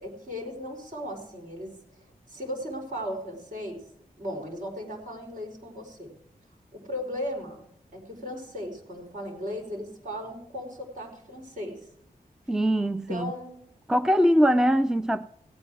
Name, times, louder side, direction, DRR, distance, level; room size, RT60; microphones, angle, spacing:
voice 1, 0.0-1.8 2.3-3.8 4.2-6.1 6.7-7.6 7.9-11.8 12.9-13.6, equal, 55° right, 4.8 m, -36 dB
voice 2, 12.5-13.3 13.9-15.3, equal, 5° right, 0.4 m, -22 dB
17.0 x 8.9 x 4.8 m
wide cardioid pair, 85°, 16 cm